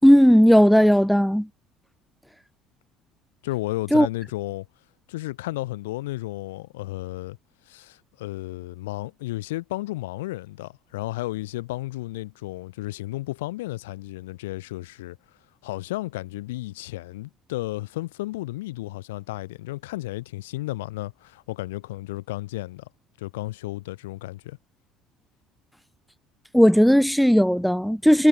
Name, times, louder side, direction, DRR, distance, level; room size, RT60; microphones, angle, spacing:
voice 1, 0.0-1.5 3.9-4.1 26.5-28.3, equal, ahead, 3.2 m, -16 dB
voice 2, 3.4-4.7 5.1-7.4 7.7-15.2 15.6-22.9 23.2-24.6, left 18 dB, 80° left, 4.0 m, -33 dB
hypercardioid pair, 60°, 0 cm